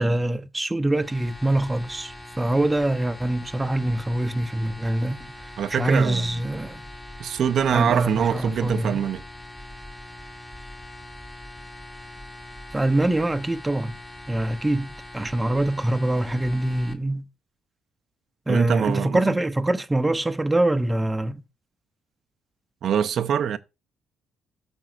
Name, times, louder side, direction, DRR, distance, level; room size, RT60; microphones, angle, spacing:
voice 1, 0.0-5.3 5.8-6.8 7.7-9.0 12.7-14.0 14.3-17.3 18.5-21.4, right 1 dB, 15° right, 0.8 m, -24 dB
sound 1, 0.9-16.9, left 1 dB, 15° left, 1.7 m, -42 dB
voice 2, 5.6-6.4 7.2-9.2 18.5-19.2 22.8-23.6, right 9 dB, 65° right, 0.6 m, -24 dB
13.5 x 5.3 x 2.5 m
cardioid pair, 90°, 0 cm